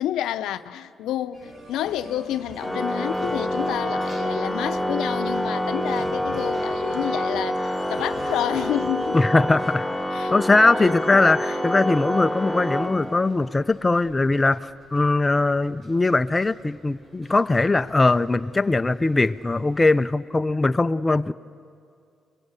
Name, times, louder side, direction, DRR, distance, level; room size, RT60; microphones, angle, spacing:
voice 1, 0.0-9.2 10.1-10.4 11.5-11.6, left 11 dB, 85° left, 0.7 m, -29 dB
sound 1, 1.3-20.1, right 1 dB, 45° right, 4.1 m, -47 dB
sound 2, 1.4-7.5, right 1 dB, 80° right, 6.1 m, -46 dB
Organ, 2.6-13.5, equal, ahead, 1.0 m, -27 dB
voice 2, 9.1-9.9 10.3-21.3, left 2 dB, 20° left, 0.6 m, -20 dB
29.5 x 21.0 x 8.3 m
cardioid pair, 90°, 0 cm